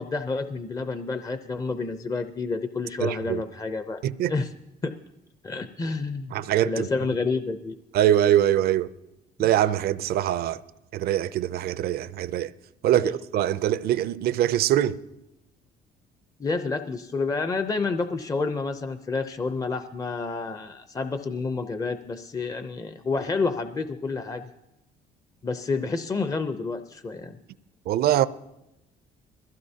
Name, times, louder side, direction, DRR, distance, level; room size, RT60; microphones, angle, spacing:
voice 1, 0.0-4.0 4.3-4.5 4.8-4.9 5.4-6.4 6.6-7.8 13.0-13.1 16.4-24.4 25.4-27.4, left 4 dB, 20° left, 0.6 m, -29 dB
voice 2, 3.0-3.4 4.0-4.4 6.3-6.9 7.9-8.9 9.4-10.6 10.9-12.5 12.8-15.0 27.9-28.3, right 12 dB, 65° right, 0.5 m, -23 dB
21.5 x 15.5 x 2.8 m
cardioid pair, 110°, 17 cm